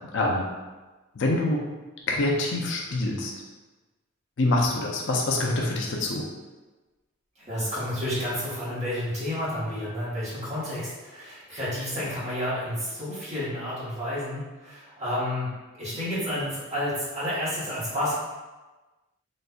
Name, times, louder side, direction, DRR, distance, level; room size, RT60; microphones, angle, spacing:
voice 1, 0.1-0.6 1.2-1.6 2.1-3.3 4.4-6.2, left 2 dB, 55° left, -1 dB, 0.4 m, -25 dB
voice 2, 7.4-15.5 15.8-18.1, left 1 dB, 30° right, -10 dB, 1.2 m, -30 dB
4.0 x 2.5 x 2.3 m, 1.2 s
head